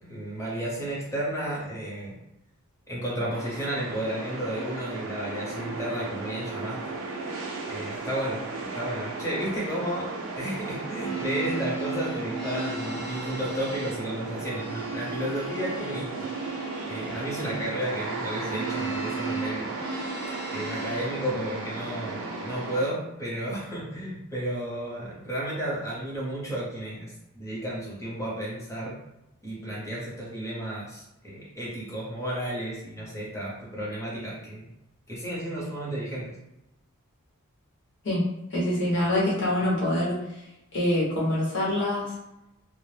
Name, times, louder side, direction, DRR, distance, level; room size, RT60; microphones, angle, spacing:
voice 1, 0.0-2.1 2.9-6.8 7.7-10.1 10.4-16.3 16.8-19.7 20.5-29.0 29.4-34.7 35.1-36.3, right 1 dB, 15° left, -6 dB, 0.8 m, -32 dB
sound 1, 3.3-22.9, right 3 dB, 65° right, 0.5 m, -36 dB
sound 2, 10.8-21.1, right 3 dB, 80° left, 0.9 m, -36 dB
voice 2, 38.5-40.2 40.7-42.1, left 1 dB, 55° left, -5 dB, 0.9 m, -25 dB
2.1 x 2.0 x 3.2 m, 0.90 s
head